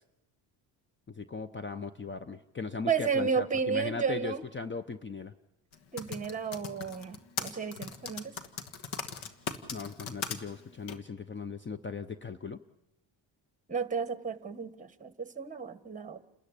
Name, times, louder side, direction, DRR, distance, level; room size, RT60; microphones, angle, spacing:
voice 1, 1.1-5.3 9.7-12.6, left 4 dB, 25° left, 12 dB, 0.9 m, -38 dB
voice 2, 2.9-4.4 5.9-8.3 13.7-16.2, right 6 dB, 15° right, 12 dB, 1.5 m, -32 dB
Typing, 5.7-10.4 10.9-11.0, left 7 dB, 80° left, 1.8 m, -37 dB
28.5 x 13.5 x 9.9 m, 0.92 s
cardioid pair, 75°, 47 cm